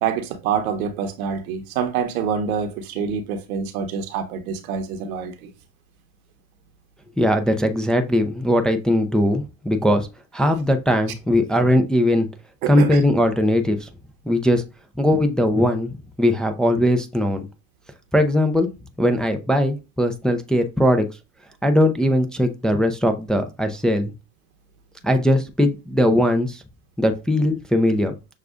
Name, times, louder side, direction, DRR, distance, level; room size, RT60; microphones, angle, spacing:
voice 1, 0.0-5.5 12.6-13.0, right 7 dB, 80° right, 0.9 m, -26 dB
voice 2, 7.2-10.1 10.3-12.3 12.7-13.9 14.3-14.6 15.0-17.5 18.1-18.7 19.0-21.0 21.6-24.1 25.0-26.6 27.0-28.1, left 1 dB, ahead, 0.4 m, -19 dB
6.4 x 2.4 x 2.4 m
hypercardioid pair, 90°, 43 cm